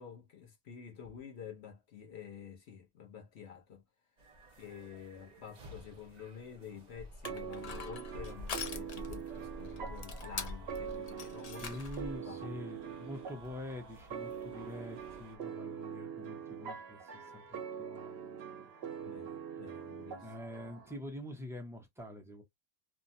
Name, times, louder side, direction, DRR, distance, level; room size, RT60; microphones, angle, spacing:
voice 1, 0.0-3.8 4.6-11.8 12.2-12.6 19.0-20.3, left 7 dB, 75° left, 1.0 m, -49 dB
sound 1, 4.2-15.4, right 2 dB, 40° right, 0.9 m, -59 dB
Crushing, 6.9-12.2, left 3 dB, 50° left, 0.5 m, -43 dB
sound 2, 7.2-21.0, right 7 dB, 70° right, 0.9 m, -44 dB
voice 2, 11.6-19.4 20.2-22.4, left 1 dB, 5° right, 0.5 m, -46 dB
2.8 x 2.2 x 2.6 m
omnidirectional pair, 1.1 m